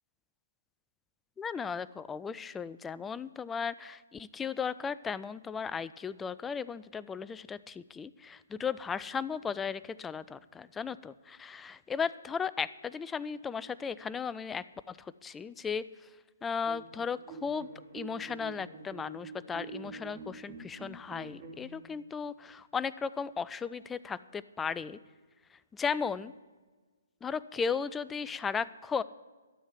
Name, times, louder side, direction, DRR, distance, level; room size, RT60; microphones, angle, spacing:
voice 1, 1.4-15.9 16.4-17.7 17.9-25.0 25.7-26.3 27.2-29.0, left 6 dB, 10° left, 17 dB, 0.4 m, -36 dB
sound 1, 16.6-21.7, right 4 dB, 30° right, 3.2 m, -46 dB
13.0 x 7.3 x 9.7 m, 1.3 s
figure-of-eight pair, 130°, 0 cm